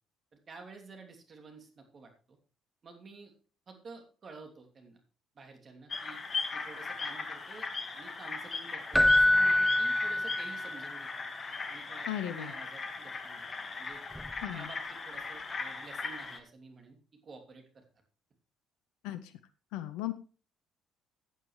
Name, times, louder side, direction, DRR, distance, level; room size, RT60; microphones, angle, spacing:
voice 1, 0.3-2.4 2.8-3.3 3.7-5.0 5.3-6.2 6.5-7.7 7.9-11.2 11.7-13.5 13.8-17.8, right 4 dB, 40° right, 3 dB, 2.9 m, -51 dB
sound 1, 5.9-16.4, left 4 dB, 40° left, 1.8 m, -39 dB
Keyboard (musical), 8.9-10.9 14.2-14.3, left 1 dB, ahead, 0.4 m, -25 dB
voice 2, 12.1-12.5 14.4-14.7 19.0-19.3 19.7-20.1, left 13 dB, 70° left, 12 dB, 0.7 m, -36 dB
15.0 x 9.0 x 3.2 m, 0.36 s
hypercardioid pair, 50°, 0 cm